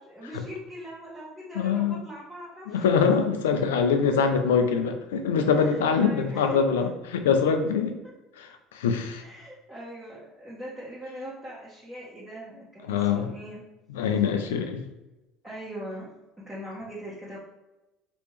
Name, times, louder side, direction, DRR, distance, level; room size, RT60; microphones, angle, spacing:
voice 1, 0.0-2.8 3.7-3.8 5.5-6.6 8.0-8.1 9.2-13.6 15.4-16.1 16.4-17.4, equal, 15° right, -9 dB, 1.3 m, -41 dB
voice 2, 1.5-2.0 2.7-8.0 8.4-9.2 12.9-13.3 13.9-14.8, left 6 dB, 85° left, 6 dB, 0.4 m, -24 dB
3.4 x 3.0 x 3.1 m, 1.0 s
hypercardioid pair, 75°, 0 cm